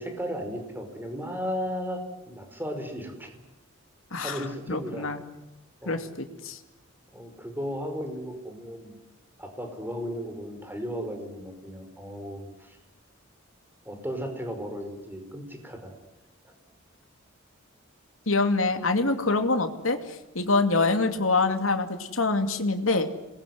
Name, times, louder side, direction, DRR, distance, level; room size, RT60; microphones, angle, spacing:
voice 1, 0.0-2.0 2.3-3.3 4.2-5.1 5.8-6.0 7.1-9.0 9.4-12.8 13.8-15.9 16.4-16.5, equal, 10° right, 5 dB, 5.0 m, -35 dB
voice 2, 4.1-5.2 5.9-6.6 18.3-23.1, left 3 dB, 75° left, 6 dB, 2.6 m, -25 dB
26.5 x 21.0 x 9.5 m, 1.0 s
head